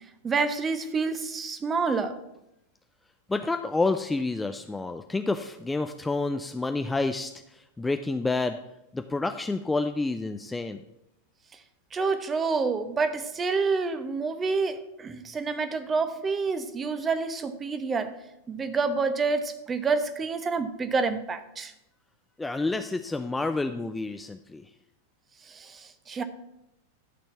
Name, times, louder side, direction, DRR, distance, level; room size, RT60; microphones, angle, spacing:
voice 1, 0.2-2.2 11.9-18.1 18.5-21.7 25.5-26.2, right 4 dB, 20° right, 9 dB, 0.9 m, -28 dB
voice 2, 3.3-7.3 7.8-8.6 8.9-10.8 22.4-24.6, left 3 dB, 10° left, 7 dB, 0.4 m, -29 dB
12.0 x 4.4 x 7.1 m, 0.86 s
figure-of-eight pair, 90°, 0 cm